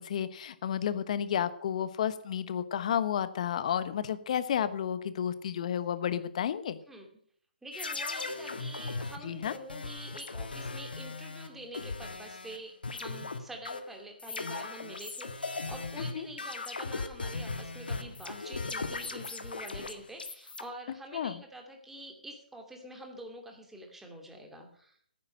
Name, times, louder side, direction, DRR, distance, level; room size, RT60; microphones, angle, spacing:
voice 1, 0.0-6.8 9.2-9.5 16.1-16.2 21.1-21.4, left 9 dB, 45° left, 14 dB, 1.1 m, -31 dB
voice 2, 7.6-25.0, right 1 dB, 5° right, 2 dB, 2.6 m, -46 dB
sound 1, 7.7-12.6 12.8-20.6, left 3 dB, 80° left, 1.8 m, -38 dB
14.5 x 9.7 x 6.5 m, 0.62 s
figure-of-eight pair, 140°, 5 cm